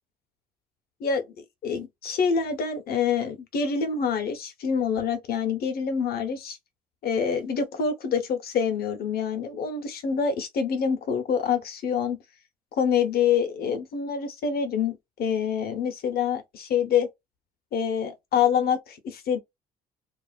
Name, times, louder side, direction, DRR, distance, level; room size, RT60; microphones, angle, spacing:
voice 1, 1.6-6.6 7.0-12.2 12.8-17.1 17.7-19.4, left 6 dB, 60° left, 1.0 m, -26 dB
2.6 x 2.3 x 2.4 m
hypercardioid pair, 55°, 18 cm